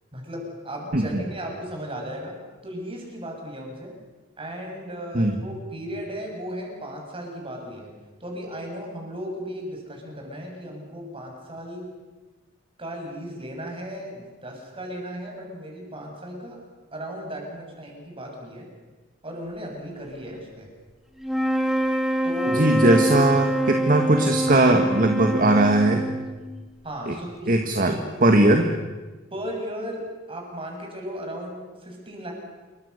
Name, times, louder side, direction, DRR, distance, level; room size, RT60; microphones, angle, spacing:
voice 1, 0.1-2.4 2.6-4.0 4.4-7.9 8.2-11.9 12.8-16.6 16.9-18.7 19.2-20.7 22.2-22.9 26.8-28.0 29.3-32.3, equal, 30° right, 0 dB, 7.3 m, -36 dB
sound 1, 21.2-26.7, right 1 dB, ahead, 3.1 m, -25 dB
voice 2, 22.5-26.0 27.1-27.2 27.5-28.7, right 2 dB, 45° right, 4 dB, 1.9 m, -19 dB
28.0 x 24.0 x 6.8 m, 1.3 s
head